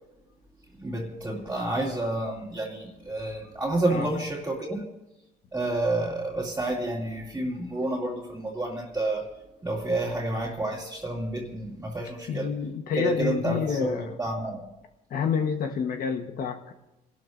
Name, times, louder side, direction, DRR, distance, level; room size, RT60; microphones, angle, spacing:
voice 1, 0.8-4.8 5.5-9.3 9.6-12.5 13.0-14.6, right 2 dB, 15° right, -6 dB, 2.5 m, -29 dB
voice 2, 12.3-14.2 15.1-16.7, left 6 dB, 60° left, 6 dB, 1.2 m, -28 dB
28.5 x 12.5 x 2.6 m, 0.95 s
cardioid pair, 110°, 17 cm